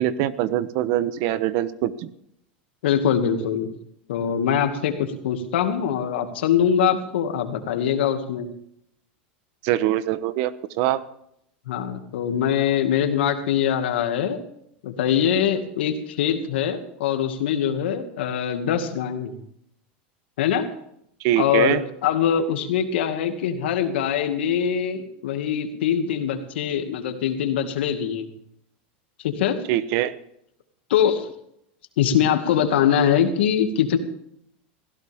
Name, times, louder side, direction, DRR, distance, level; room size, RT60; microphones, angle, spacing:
voice 1, 0.0-2.1 9.6-11.0 21.2-21.8 29.7-30.1, right 13 dB, 60° right, 15 dB, 1.1 m, -23 dB
voice 2, 2.8-3.7 4.1-8.5 11.7-14.4 14.8-19.4 20.4-20.7 21.4-28.3 29.2-29.6 30.9-31.3 32.0-34.0, left 8 dB, 85° left, 7 dB, 2.1 m, -23 dB
19.0 x 16.0 x 3.6 m, 0.74 s
supercardioid pair, 130°, 6 cm